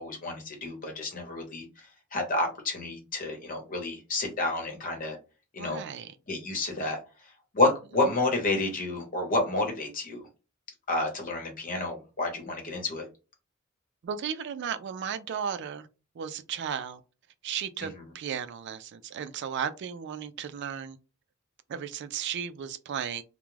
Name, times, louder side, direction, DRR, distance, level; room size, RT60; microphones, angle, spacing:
voice 1, 0.0-5.2 5.5-5.8 6.3-7.0 7.5-10.2 10.9-13.0, left 2 dB, 40° left, 1.0 m, -29 dB
voice 2, 5.6-6.2 14.0-15.9 16.2-17.0 17.4-21.0 21.7-23.2, right 8 dB, 55° right, 0.3 m, -35 dB
2.3 x 2.1 x 3.1 m
head